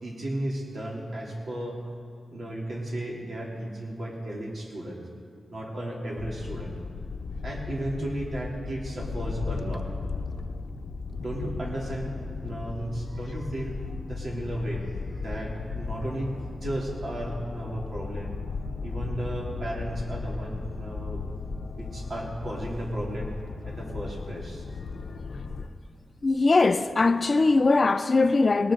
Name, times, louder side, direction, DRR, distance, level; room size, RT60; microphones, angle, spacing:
voice 1, 0.0-1.8 2.3-5.0 5.5-6.7 7.4-9.9 11.2-13.8 14.1-18.4 18.8-21.3 21.7-23.3 23.6-24.7, right 1 dB, 60° right, 3.1 m, -34 dB
sound 1, 6.2-25.7, left 4 dB, 75° left, 0.8 m, -36 dB
voice 2, 26.2-28.7, left 3 dB, 40° left, 0.4 m, -21 dB
19.0 x 19.0 x 3.8 m
wide cardioid pair, 110°, 0 cm